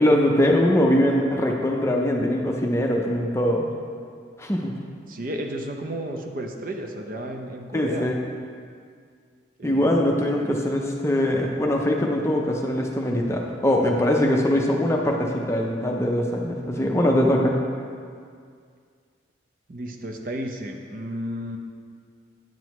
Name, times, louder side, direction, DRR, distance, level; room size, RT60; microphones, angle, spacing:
voice 1, 0.0-3.7 4.4-4.7 7.7-8.2 9.6-17.6, left 1 dB, 15° left, 0 dB, 0.5 m, -22 dB
voice 2, 5.1-8.1 9.6-10.0 19.7-21.6, equal, 45° right, 3 dB, 0.6 m, -32 dB
8.9 x 7.6 x 3.1 m, 2.1 s
head